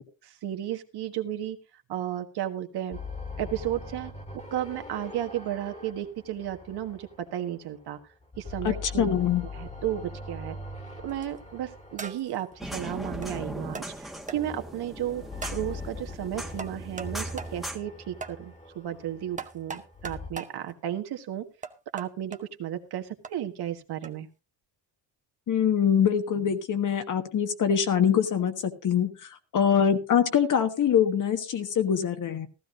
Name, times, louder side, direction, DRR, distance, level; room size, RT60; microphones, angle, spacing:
voice 1, 0.2-1.6 1.9-3.0 3.4-8.0 8.4-9.1 9.5-10.6 11.0-15.3 15.5-21.5 21.9-24.3, right 11 dB, 60° right, 6 dB, 1.6 m, -33 dB
sound 1, 2.9-7.9 8.2-13.5 14.3-20.3, left 2 dB, 15° left, 1.8 m, -42 dB
voice 2, 8.6-9.4 25.5-32.5, left 8 dB, 45° left, 8 dB, 1.4 m, -24 dB
sound 2, 11.1-11.4 12.0-12.4 13.2-13.3 13.7-13.9 14.3-14.4 15.4-15.6 16.6-17.1 17.4-17.5 18.2-18.4 19.4-20.5 21.6-22.4 23.2-23.3 24.0-24.2, right 4 dB, 15° right, 0.9 m, -39 dB
sound 3, 12.6-17.8, equal, ahead, 1.3 m, -39 dB
15.5 x 14.0 x 2.6 m, 0.28 s
cardioid pair, 135°, 44 cm